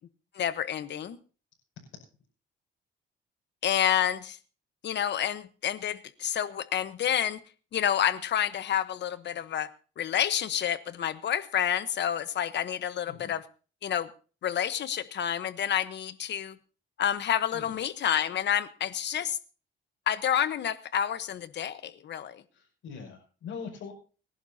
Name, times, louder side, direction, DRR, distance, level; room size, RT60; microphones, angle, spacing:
voice 1, 0.3-1.2 3.6-4.4 4.8-7.4 7.7-13.4 13.8-14.1 14.4-16.6 17.0-19.4 20.1-22.4, left 10 dB, 60° left, 13 dB, 1.1 m, -29 dB
voice 2, 22.5-23.9, left 6 dB, 80° left, -4 dB, 6.0 m, -42 dB
29.5 x 11.5 x 2.8 m, 0.39 s
cardioid pair, 90°, 20 cm